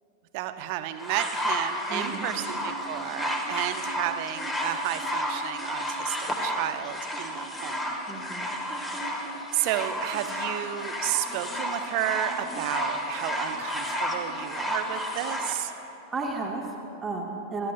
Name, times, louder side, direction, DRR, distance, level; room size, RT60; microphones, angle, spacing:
voice 1, 0.3-7.8 9.1-15.7, right 13 dB, 45° right, 9 dB, 0.7 m, -32 dB
sound 1, 1.0-15.6 16.5-16.6, equal, 15° left, 1.5 m, -32 dB
voice 2, 1.9-2.3 8.1-8.5 16.1-17.7, right 3 dB, 20° right, 0 dB, 1.3 m, -33 dB
25.5 x 13.0 x 2.2 m, 2.8 s
figure-of-eight pair, 90°, 0 cm